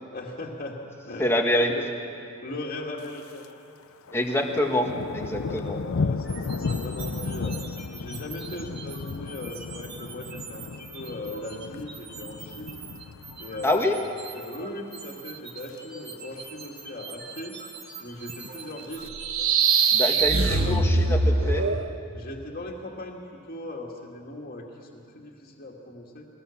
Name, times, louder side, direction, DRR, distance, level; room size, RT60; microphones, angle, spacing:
voice 1, 0.1-0.8 1.0-1.3 1.6-1.8 2.4-3.5 5.5-7.6 7.9-10.7 10.9-12.8 13.4-13.9 14.3-17.6 18.0-19.1 20.3-20.8 22.1-24.7 24.9-26.3, left 1 dB, 45° left, -1 dB, 2.2 m, -38 dB
voice 2, 1.2-1.7 4.1-5.8 13.6-13.9 19.9-21.6, left 1 dB, 10° left, 2 dB, 1.6 m, -25 dB
Thunder, 3.0-3.5 3.8-14.2 14.5-14.9 15.3-15.8 16.1-16.2 16.3-16.4 16.8-17.4 18.1-19.1, left 4 dB, 90° left, 0.6 m, -35 dB
sound 1, 6.2-19.5, right 5 dB, 50° right, 2.4 m, -44 dB
sound 2, 19.1-21.9, right 4 dB, 85° right, 1.1 m, -22 dB
21.5 x 18.0 x 7.3 m, 2.6 s
head